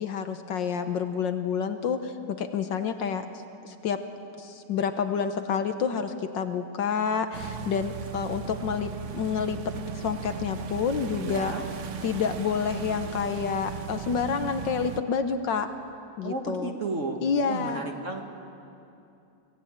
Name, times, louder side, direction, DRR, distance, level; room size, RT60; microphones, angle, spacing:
voice 1, 0.0-3.3 3.6-4.0 4.4-11.7 12.0-15.7 16.2-16.7 17.2-17.8, left 6 dB, 65° left, 8 dB, 1.5 m, -29 dB
sound 1, 7.3-15.0, right 7 dB, 60° right, 0.8 m, -37 dB
voice 2, 11.2-11.6 16.2-17.2 17.5-18.2, right 3 dB, 40° right, 3 dB, 1.7 m, -33 dB
25.0 x 17.5 x 8.8 m, 2.7 s
omnidirectional pair, 2.4 m